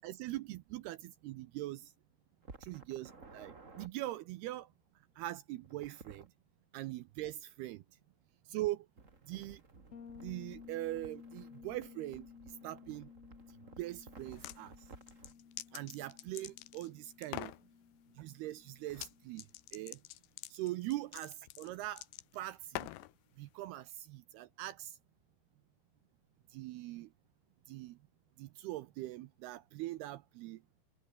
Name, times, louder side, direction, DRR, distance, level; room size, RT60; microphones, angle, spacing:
voice 1, 0.0-1.9 2.6-4.7 5.2-6.3 6.7-7.8 8.5-8.9 9.3-9.6 10.2-12.3 12.6-13.1 13.8-14.7 15.7-17.5 18.2-19.4 19.7-20.0 20.5-22.0 22.3-22.9 23.4-25.0 26.5-27.1 27.7-28.0 28.4-30.6, right 16 dB, 85° right, 2.3 m, -42 dB
sound 1, 2.4-3.9 5.6-6.3 9.0-15.3, right 3 dB, 20° right, 2.3 m, -56 dB
Bass guitar, 9.9-19.6, left 7 dB, 40° left, 3.0 m, -56 dB
sound 2, 14.2-14.6 15.1-16.9 17.2-17.6 18.9-19.1 19.4-23.1, left 16 dB, 75° left, 3.0 m, -45 dB
omnidirectional pair, 5.4 m